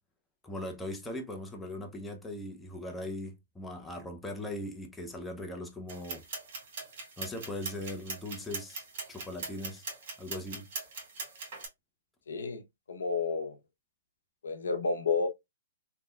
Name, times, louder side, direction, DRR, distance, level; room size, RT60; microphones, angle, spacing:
voice 1, 0.4-6.2 7.2-8.8 9.1-9.8 10.2-10.7, left 1 dB, 5° left, 0.5 m, -39 dB
sound 1, 5.9-11.7, right 4 dB, 55° right, 1.6 m, -41 dB
voice 2, 12.3-12.6 12.9-13.6 14.4-15.3, left 4 dB, 75° left, 0.6 m, -30 dB
3.4 x 2.2 x 2.2 m
hypercardioid pair, 125°, 0 cm